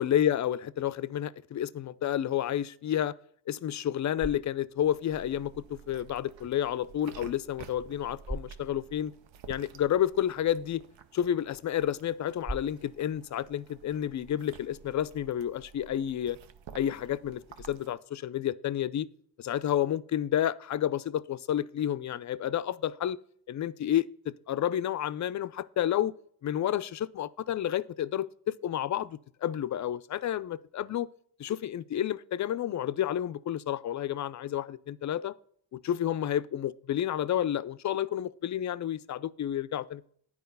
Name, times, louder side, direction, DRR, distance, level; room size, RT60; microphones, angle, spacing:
voice 1, 0.0-3.1 3.5-9.1 9.5-10.8 11.1-16.4 16.7-19.1 19.4-23.2 23.5-26.1 26.4-31.1 31.4-35.3 35.7-40.1, left 11 dB, 40° left, 0.4 m, -30 dB
sound 1, 3.8-14.9, right 1 dB, 20° right, 1.9 m, -47 dB
sound 2, 4.8-17.9, right 7 dB, 75° right, 0.8 m, -52 dB
9.4 x 4.8 x 5.4 m
cardioid pair, 85°, 46 cm